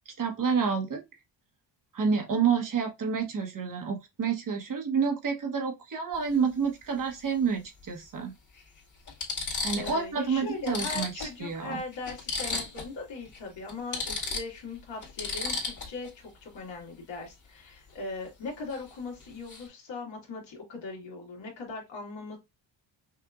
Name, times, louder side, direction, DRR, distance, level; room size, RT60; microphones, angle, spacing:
voice 1, 0.2-1.0 1.9-8.3 9.6-11.8, right 6 dB, 45° right, 1.2 m, -29 dB
sound 1, 6.1-6.3 7.8-7.9 8.6-8.7 9.1-10.0 10.3-10.4 10.7-13.0 13.2-13.4 13.7-16.1 18.7-18.9 19.2-19.7, left 3 dB, 40° left, 2.1 m, -34 dB
voice 2, 9.8-22.4, left 3 dB, 70° left, 2.0 m, -39 dB
5.8 x 2.6 x 2.4 m
cardioid pair, 95°, 46 cm